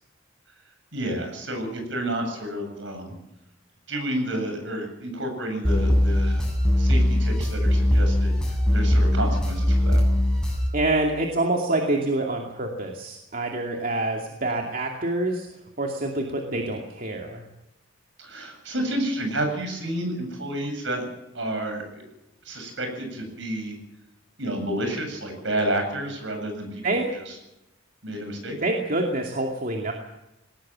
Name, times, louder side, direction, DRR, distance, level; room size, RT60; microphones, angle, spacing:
voice 1, 0.9-3.2 3.9-6.4 6.8-8.3 8.7-10.0 16.5-16.8 18.2-21.0 21.3-22.0 22.4-23.7 24.4-26.8 27.3-27.4 28.0-28.6, right 1 dB, 70° right, 4 dB, 8.0 m, -30 dB
sound 1, 5.6-10.7, equal, 5° left, 7.3 m, -21 dB
voice 2, 10.7-15.5 15.8-17.4 26.8-27.1 28.6-29.9, right 2 dB, 45° right, 1 dB, 2.6 m, -26 dB
20.5 x 19.0 x 7.6 m, 0.91 s
head